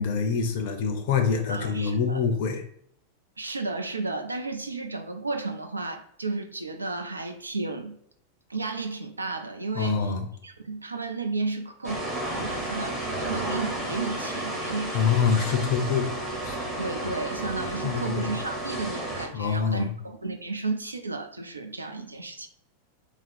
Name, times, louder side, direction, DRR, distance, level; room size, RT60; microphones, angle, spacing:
voice 1, 0.0-2.6 9.8-10.2 14.9-16.1 16.4-16.6 17.8-18.3 19.3-19.9, left 6 dB, 50° left, 5 dB, 0.5 m, -25 dB
voice 2, 1.5-2.2 3.4-8.0 8.5-10.1 10.4-12.0 12.3-15.6 16.8-22.5, right 3 dB, 80° right, 6 dB, 0.4 m, -33 dB
sound 1, 11.8-19.3, right 1 dB, 15° right, 1.1 m, -32 dB
3.6 x 2.0 x 4.2 m, 0.69 s
figure-of-eight pair, 90°, 0 cm